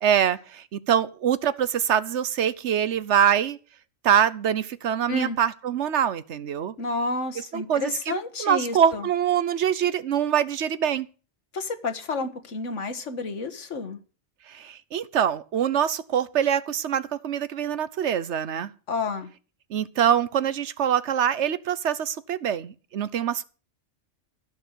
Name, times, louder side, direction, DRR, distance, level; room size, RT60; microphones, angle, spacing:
voice 1, 0.0-3.6 4.0-6.7 7.5-11.1 14.5-18.7 19.7-23.4, right 9 dB, 70° right, 1.1 m, -24 dB
voice 2, 6.8-9.0 11.5-14.0 18.9-19.3, left 3 dB, 80° left, 1.8 m, -30 dB
14.0 x 6.8 x 8.0 m
omnidirectional pair, 1.2 m